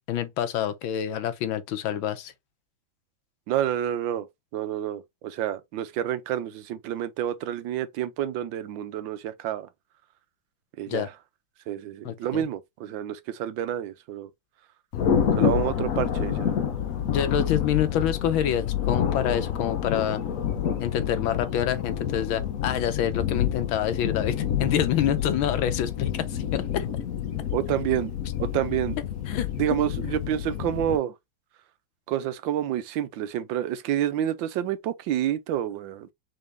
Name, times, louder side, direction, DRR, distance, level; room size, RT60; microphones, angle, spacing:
voice 1, 0.1-2.3 10.9-11.1 12.0-12.4 17.1-20.2 20.8-26.9 29.3-29.8, left 9 dB, 85° left, 1.6 m, -27 dB
voice 2, 3.5-4.3 4.5-9.7 10.8-11.1 11.7-14.3 15.4-16.5 27.5-28.1 28.4-29.0 29.6-31.1 32.1-36.1, right 11 dB, 80° right, 1.3 m, -28 dB
Thunder, 14.9-31.0, left 9 dB, 60° left, 0.9 m, -28 dB
4.1 x 3.8 x 3.3 m
omnidirectional pair, 2.1 m